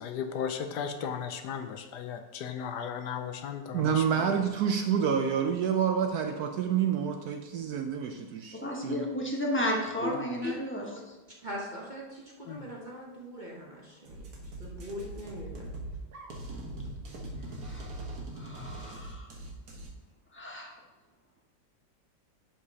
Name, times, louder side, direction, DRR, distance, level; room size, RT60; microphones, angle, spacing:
voice 1, 0.0-4.4 12.5-12.7, left 7 dB, 70° left, 7 dB, 1.1 m, -36 dB
voice 2, 3.7-9.0, right 7 dB, 70° right, 5 dB, 0.9 m, -28 dB
voice 3, 8.5-10.9 17.6-17.9 18.3-19.3 20.3-20.7, equal, 10° left, -2 dB, 0.8 m, -33 dB
voice 4, 11.4-14.3 14.6-15.7, left 1 dB, 35° right, -3 dB, 0.9 m, -40 dB
sound 1, 14.1-19.9, right 1 dB, 55° right, 1.5 m, -41 dB
11.0 x 5.0 x 2.8 m, 1.2 s
omnidirectional pair, 2.0 m